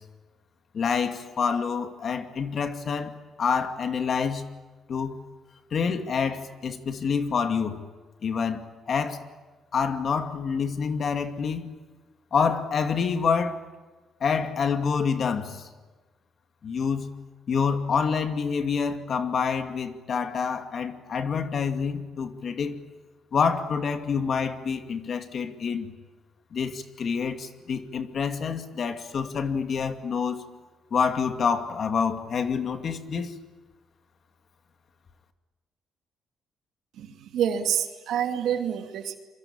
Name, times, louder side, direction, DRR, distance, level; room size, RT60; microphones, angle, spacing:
voice 1, 0.7-3.1 3.4-4.5 4.9-5.2 5.7-7.8 8.2-9.2 9.7-11.8 12.3-13.6 14.2-15.6 16.6-17.1 17.5-22.8 23.3-25.9 26.5-30.4 30.9-33.3, left 6 dB, 55° left, 2.4 m, -27 dB
voice 2, 37.0-39.2, right 9 dB, 80° right, 2.7 m, -27 dB
27.5 x 24.0 x 8.9 m
cardioid pair, 90°, 0 cm